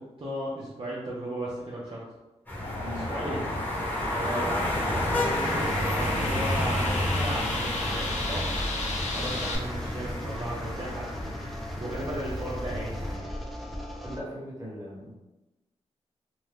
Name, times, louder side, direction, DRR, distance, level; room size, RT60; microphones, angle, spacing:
voice 1, 0.2-2.0 2.9-3.5 4.0-8.5 9.0-11.4 11.8-13.3, right 1 dB, 45° right, -7 dB, 0.7 m, -35 dB
sound 1, 2.5-13.2, left 1 dB, 15° left, 1.1 m, -31 dB
sound 2, 2.6-9.6, left 3 dB, 75° left, 0.5 m, -34 dB
sound 3, 5.4-14.2, equal, ahead, 0.4 m, -40 dB
voice 2, 14.0-15.2, equal, 25° right, -6 dB, 1.3 m, -39 dB
2.7 x 2.2 x 3.3 m, 1.0 s
cardioid pair, 75°, 12 cm